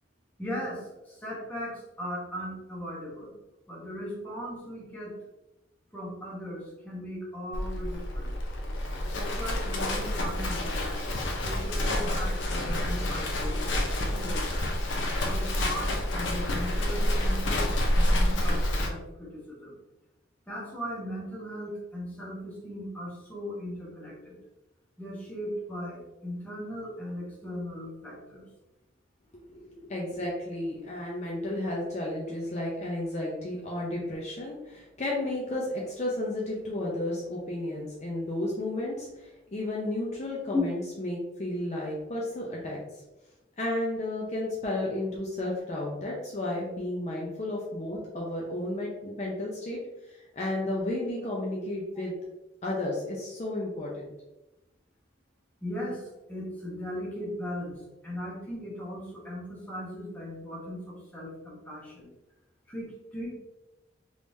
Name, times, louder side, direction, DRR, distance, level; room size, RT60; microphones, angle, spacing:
voice 1, 0.4-3.3 3.7-5.2 5.9-8.3 9.1-10.9 11.4-13.7 14.0-14.6 15.2-17.6 18.0-19.7 20.5-24.3 25.0-28.4 40.5-40.6 55.6-57.8 58.0-62.1 62.7-63.3, left 1 dB, 10° left, -5 dB, 0.9 m, -37 dB
Livestock farm animals working animals, 7.5-18.9, left 1 dB, 85° left, 0.6 m, -28 dB
voice 2, 29.5-43.0 43.6-52.2 52.6-54.1, left 1 dB, 35° left, -3 dB, 0.5 m, -33 dB
3.5 x 3.1 x 2.6 m, 0.99 s
head